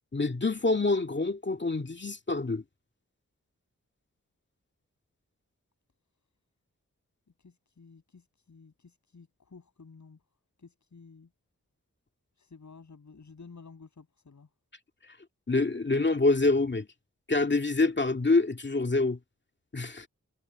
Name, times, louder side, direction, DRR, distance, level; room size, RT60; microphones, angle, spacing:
voice 1, 0.1-2.6 15.5-16.9 17.3-19.2 19.7-20.1, left 3 dB, 35° left, 2.1 m, -26 dB
voice 2, 7.4-10.2 10.6-11.3 12.4-14.5, left 4 dB, 70° left, 7.6 m, -52 dB
cardioid pair, 50°, 31 cm